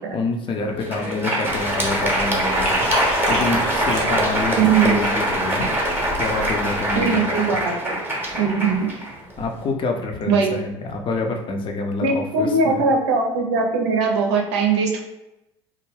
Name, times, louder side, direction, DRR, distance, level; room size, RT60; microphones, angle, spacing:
voice 1, 0.1-2.9 3.3-5.6 6.2-7.6 8.4-8.5 9.4-12.8, left 3 dB, 35° left, 3 dB, 0.5 m, -27 dB
Crowd, 0.7-9.6, right 1 dB, 15° right, 0.8 m, -23 dB
Liquid, 1.5-7.1, left 2 dB, 65° left, 0.9 m, -31 dB
voice 2, 4.6-5.0 7.0-8.0 8.4-8.9 10.3-10.6 12.0-15.0, right 5 dB, 70° right, 1 dB, 0.6 m, -20 dB
2.3 x 2.1 x 3.2 m, 0.93 s
figure-of-eight pair, 65°, 15 cm